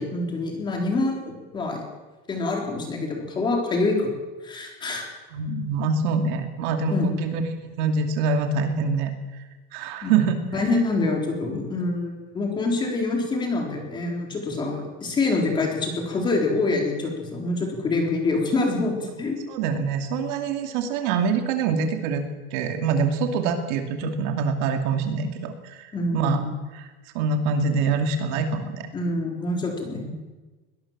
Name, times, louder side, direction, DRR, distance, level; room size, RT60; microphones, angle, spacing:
voice 1, 0.0-1.8 2.3-4.1 4.4-5.1 6.9-7.1 10.0-10.1 10.5-19.4 25.9-26.5 28.9-30.1, left 3 dB, 15° left, 1 dB, 3.9 m, -26 dB
voice 2, 5.3-7.4 7.8-9.1 9.7-10.4 19.5-26.4 26.7-26.9 27.1-28.9, right 4 dB, 50° right, 5 dB, 2.6 m, -25 dB
22.0 x 20.0 x 7.4 m, 1.2 s
supercardioid pair, 180°, 30 cm